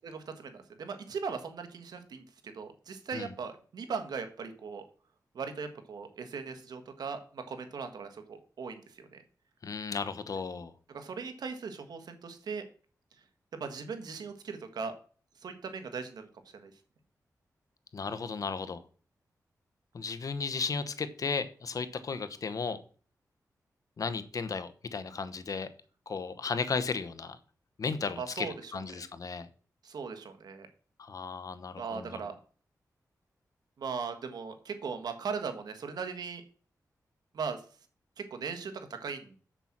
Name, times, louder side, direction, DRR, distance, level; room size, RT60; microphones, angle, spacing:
voice 1, 0.0-4.8 5.3-9.2 10.9-12.6 13.5-14.9 15.4-16.3 16.5-16.7 28.2-28.8 29.8-30.7 31.8-32.3 33.8-36.4 37.3-37.6 38.2-39.4, right 5 dB, 85° right, 7 dB, 1.5 m, -39 dB
voice 2, 9.6-10.7 17.9-18.8 19.9-22.8 24.0-25.7 26.1-27.4 27.8-29.5 31.0-32.2, left 5 dB, 60° left, 11 dB, 1.0 m, -35 dB
7.4 x 6.9 x 5.9 m, 0.41 s
wide cardioid pair, 85°, 7 cm